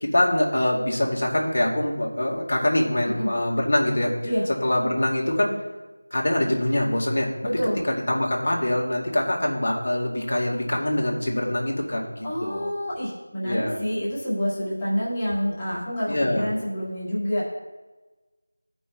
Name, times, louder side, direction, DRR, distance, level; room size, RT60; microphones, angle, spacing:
voice 1, 0.0-4.1 4.6-5.5 6.1-7.3 7.9-12.7 13.4-13.8 16.1-16.5, left 1 dB, 55° left, -2 dB, 1.7 m, -24 dB
voice 2, 7.4-7.8 12.2-17.5, equal, 15° left, -10 dB, 1.8 m, -27 dB
15.5 x 5.4 x 2.4 m, 1.2 s
figure-of-eight pair, 170°, 0 cm